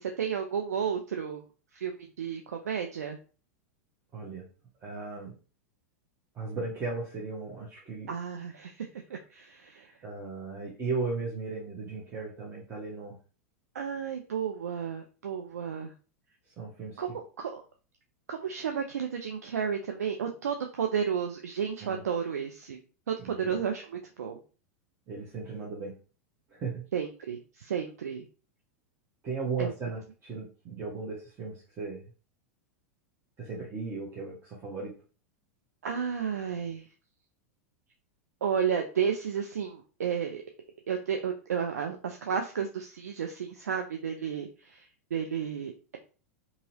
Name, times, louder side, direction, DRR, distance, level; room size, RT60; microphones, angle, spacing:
voice 1, 0.0-1.4 1.7-3.2 8.1-9.9 13.7-15.9 17.0-17.1 17.4-17.6 18.3-22.8 23.1-23.9 24.2-24.4 26.9-28.2 29.6-29.7 35.8-36.8 38.4-40.4 40.9-44.8 45.1-46.0, right 7 dB, 80° right, 3 dB, 0.4 m, -32 dB
voice 2, 4.1-4.5 4.8-5.4 6.3-8.1 10.0-13.2 16.6-17.2 21.8-22.0 23.2-23.6 25.1-26.0 26.5-26.8 29.2-32.0 33.4-34.9, right 4 dB, 30° right, -5 dB, 1.0 m, -36 dB
2.8 x 2.7 x 2.8 m, 0.36 s
hypercardioid pair, 95°, 8 cm